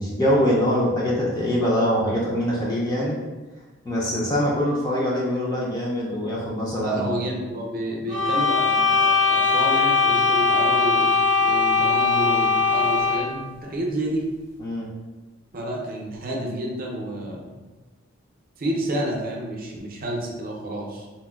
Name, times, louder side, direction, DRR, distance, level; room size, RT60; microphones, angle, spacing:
voice 1, 0.0-3.2 3.9-7.3 14.6-14.9, equal, 20° left, -5 dB, 0.4 m, -23 dB
voice 2, 6.8-11.1 11.4-14.3 15.5-17.6 18.6-21.1, right 1 dB, 45° right, -1 dB, 0.5 m, -29 dB
sound 1, 8.1-13.4, left 4 dB, 65° left, 0.7 m, -20 dB
3.9 x 2.1 x 2.3 m, 1.2 s
head